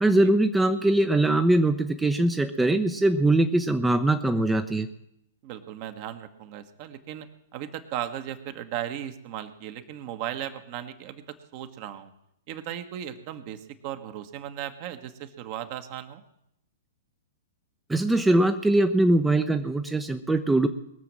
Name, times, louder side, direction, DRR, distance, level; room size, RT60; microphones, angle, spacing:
voice 1, 0.0-4.9 17.9-20.7, right 2 dB, 5° right, 8 dB, 0.7 m, -22 dB
voice 2, 5.4-12.1 12.5-16.2, right 11 dB, 40° right, 9 dB, 1.3 m, -36 dB
21.0 x 7.1 x 7.5 m, 0.80 s
figure-of-eight pair, 110°, 0 cm